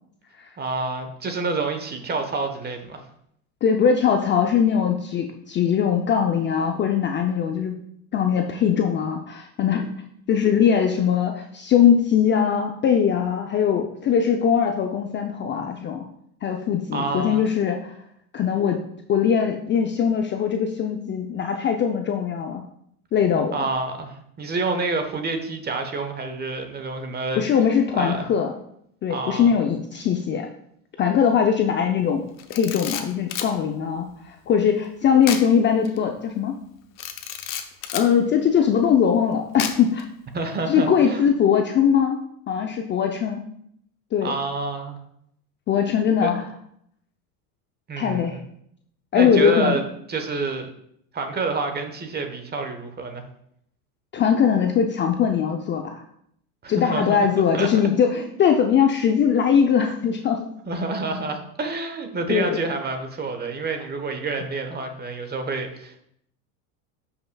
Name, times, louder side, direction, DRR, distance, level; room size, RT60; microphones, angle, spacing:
voice 1, 0.6-3.0 16.9-17.5 23.5-27.6 27.9-28.3 29.1-29.5 40.3-41.3 44.2-45.0 46.2-46.3 47.9-48.4 49.1-49.8 50.1-50.7 51.1-53.2 56.6-57.3 57.5-57.9 58.1-58.3 60.6-66.0, right 3 dB, 20° right, 6 dB, 1.1 m, -28 dB
voice 2, 3.6-7.8 8.1-9.9 10.3-16.1 16.4-17.9 18.3-18.8 19.1-22.6 23.1-23.6 27.4-28.5 29.0-30.5 31.0-36.6 37.9-40.0 40.7-42.2 42.5-43.4 44.1-44.3 45.7-46.4 48.0-48.4 49.1-49.8 54.1-56.0 56.7-60.5 62.3-62.6, left 7 dB, 25° left, 4 dB, 0.5 m, -21 dB
Camera, 32.4-33.5 35.2-35.5 35.9-36.0 37.0-38.1 39.6-40.0, left 9 dB, 45° left, 0.9 m, -31 dB
12.0 x 5.7 x 2.3 m, 0.71 s
supercardioid pair, 110°, 44 cm